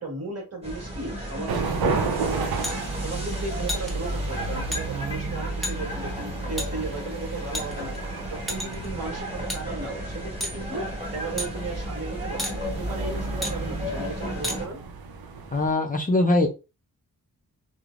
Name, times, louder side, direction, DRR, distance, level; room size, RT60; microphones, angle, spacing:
voice 1, 0.0-2.6 3.0-7.9 8.3-10.8 11.1-14.8, right 3 dB, 45° right, 0 dB, 1.3 m, -35 dB
sound 1, 0.6-14.7, right 1 dB, 15° right, 1.3 m, -33 dB
sound 2, 1.5-15.7, right 4 dB, 90° right, 0.5 m, -34 dB
sound 3, 2.6-2.8 3.7-3.9 4.7-4.8 5.6-5.8 6.6-6.7 7.5-8.0 8.5-8.9 9.5-9.6 10.4-10.6 11.4-11.5 12.4-12.6 13.4-13.6 14.4-14.6, left 1 dB, ahead, 0.8 m, -30 dB
voice 2, 15.5-16.5, left 2 dB, 25° left, 0 dB, 0.5 m, -21 dB
3.1 x 2.0 x 2.4 m, 0.30 s
cardioid pair, 80°, 35 cm